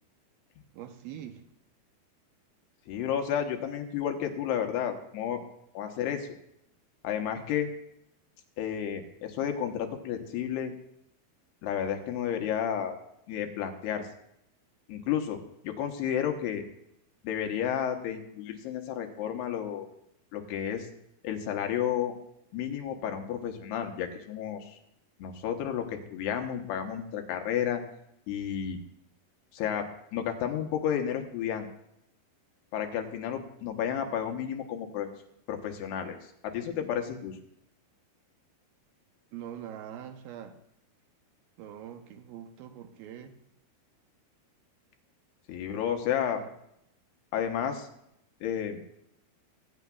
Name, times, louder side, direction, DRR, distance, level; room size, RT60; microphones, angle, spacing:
voice 1, 0.7-1.4 39.3-40.6 41.6-43.4 46.3-46.5, right 10 dB, 80° right, 6 dB, 2.4 m, -43 dB
voice 2, 2.9-5.4 5.7-6.3 7.0-7.7 8.6-10.7 11.6-13.0 13.3-14.0 14.9-15.4 15.6-16.6 17.2-19.9 20.3-20.9 21.2-22.1 22.5-24.8 25.2-27.8 28.3-28.8 29.5-31.7 32.7-35.1 35.5-36.2 36.4-37.4 45.5-46.4 47.3-47.9 48.4-48.8, left 9 dB, 85° left, 4 dB, 3.1 m, -31 dB
21.5 x 9.2 x 2.3 m, 0.77 s
omnidirectional pair, 4.6 m